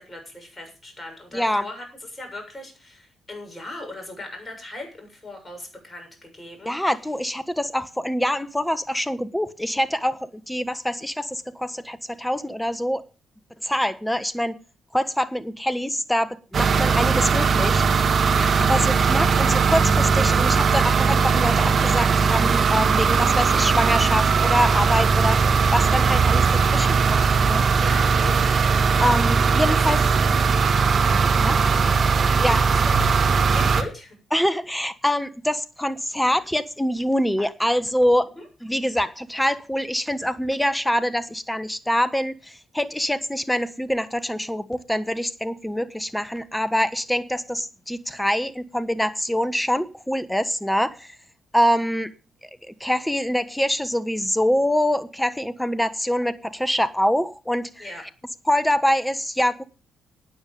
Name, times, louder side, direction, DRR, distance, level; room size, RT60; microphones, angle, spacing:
voice 1, 0.0-6.7 18.3-18.6 27.8-28.6 29.3-30.3 31.4-31.6 31.9-32.1 32.5-32.9 33.4-34.2 38.4-38.5 57.8-58.0, left 2 dB, 25° left, 4 dB, 7.0 m, -38 dB
voice 2, 1.3-1.7 6.6-13.1 13.6-14.6 14.9-17.8 18.7-26.5 26.7-27.8 29.0-30.0 31.3-31.6 32.4-32.6 34.3-38.3 38.6-51.2 51.5-52.1 52.7-57.9 58.5-59.6, equal, 5° left, 14 dB, 1.3 m, -25 dB
sound 1, 16.5-33.8, right 5 dB, 50° right, 1.7 m, -19 dB
12.5 x 9.5 x 5.3 m, 0.33 s
hypercardioid pair, 45°, 0 cm